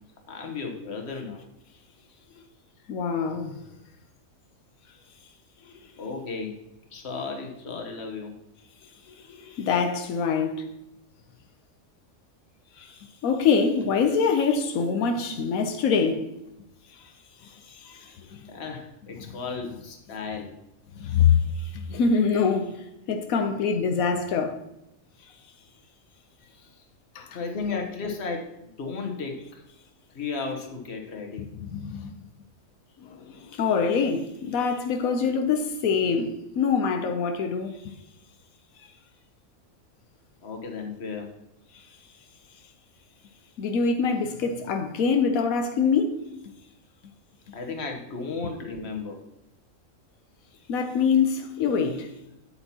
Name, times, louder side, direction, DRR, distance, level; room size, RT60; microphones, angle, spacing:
voice 1, 0.3-1.4 6.0-6.6 6.9-8.3 18.5-20.5 26.5-26.8 27.3-29.6 30.1-31.4 37.0-37.1 40.4-41.3 47.5-49.2, left 4 dB, 55° left, 1.5 m, -34 dB
voice 2, 2.9-3.6 5.6-5.7 9.1-10.7 12.8-16.3 17.4-18.5 21.0-24.6 27.1-27.3 31.5-32.2 33.0-37.9 41.7-41.8 43.6-46.3 50.7-52.1, left 5 dB, 90° left, 1.2 m, -25 dB
8.8 x 8.3 x 2.9 m
omnidirectional pair, 1.4 m